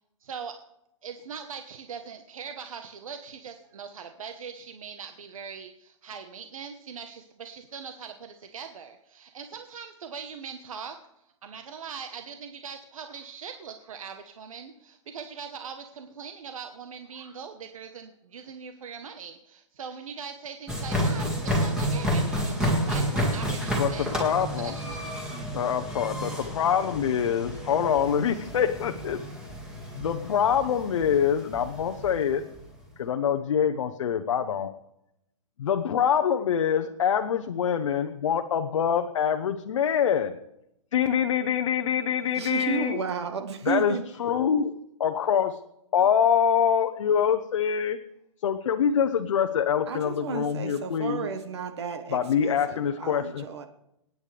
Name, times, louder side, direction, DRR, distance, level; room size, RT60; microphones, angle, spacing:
voice 1, 0.2-0.6 1.0-11.0 11.4-24.2 24.5-25.1, right 6 dB, 85° right, 1.2 m, -41 dB
sound 1, 20.7-32.7, equal, 5° right, 2.0 m, -30 dB
voice 2, 23.8-24.7 25.5-29.2 29.9-32.4 33.0-34.7 35.6-40.3 40.9-43.0 43.7-44.7 45.0-45.6 45.9-48.0 48.4-51.3 52.1-53.5, left 8 dB, 70° left, 0.9 m, -25 dB
voice 3, 42.3-44.0 49.9-53.7, right 5 dB, 55° right, 1.2 m, -33 dB
27.0 x 9.5 x 3.4 m
hypercardioid pair, 175°, 17 cm